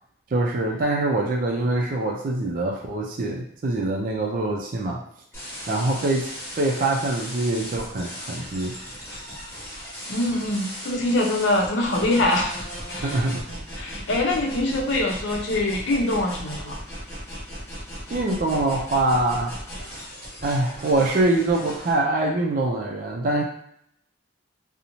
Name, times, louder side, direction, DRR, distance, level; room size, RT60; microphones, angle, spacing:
voice 1, 0.3-5.0 5.7-8.7 13.0-13.6 18.1-19.6 20.4-23.4, right 2 dB, 45° right, 0 dB, 0.4 m, -24 dB
sound 1, 5.3-21.9, equal, 15° left, 0.9 m, -37 dB
voice 2, 10.1-13.2 13.8-16.8, left 1 dB, 75° left, -1 dB, 0.6 m, -24 dB
2.5 x 2.0 x 2.9 m, 0.70 s
head